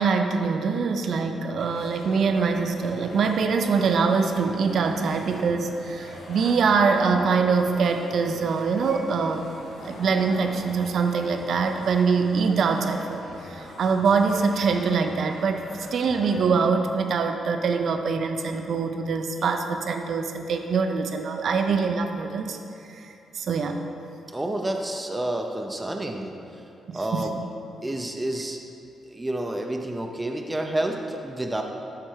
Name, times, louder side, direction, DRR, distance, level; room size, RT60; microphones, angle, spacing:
voice 1, 0.0-9.4 9.8-15.7 15.9-22.6 22.9-23.8 26.9-27.3, right 5 dB, 55° right, 5 dB, 0.6 m, -24 dB
sound 1, 1.6-16.6, left 1 dB, 85° left, 1.6 m, -42 dB
voice 2, 24.3-26.4 26.9-27.4 27.8-28.6 29.1-31.6, right 1 dB, 10° right, 3 dB, 0.6 m, -29 dB
11.5 x 4.4 x 4.6 m, 2.8 s
cardioid pair, 130°, 0 cm